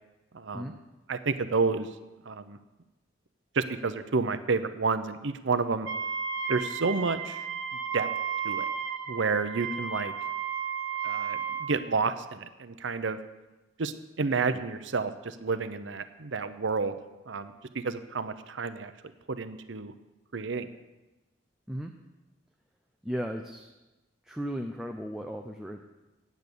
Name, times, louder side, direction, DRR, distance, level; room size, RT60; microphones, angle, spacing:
voice 1, 0.3-0.8 1.1-1.9 2.2-2.6 3.5-5.9 6.5-7.5 7.9-8.1 8.4-8.7 9.1-10.1 11.0-13.2 13.8-16.9 17.3-18.9 19.3-19.9 20.3-20.7, right 4 dB, 65° right, 12 dB, 0.7 m, -30 dB
Wind instrument woodwind instrument, 5.9-11.8, right 6 dB, 85° right, 1.2 m, -33 dB
voice 2, 23.0-23.7 24.3-25.8, equal, ahead, 2 dB, 0.5 m, -35 dB
9.2 x 8.4 x 6.9 m, 1.1 s
head